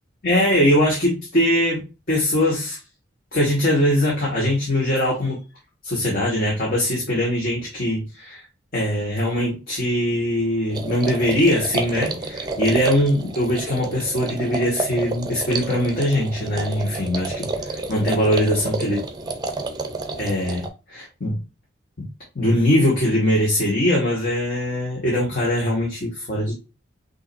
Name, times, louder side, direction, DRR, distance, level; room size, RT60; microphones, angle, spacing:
voice 1, 0.2-1.8 2.1-2.8 3.3-5.4 5.8-8.4 8.7-19.0 20.2-21.4 22.0-22.1 22.3-26.5, left 1 dB, 45° left, -4 dB, 1.6 m, -21 dB
sound 1, 10.7-20.7, right 3 dB, 20° right, 0.7 m, -30 dB
6.2 x 2.8 x 2.6 m, 0.29 s
head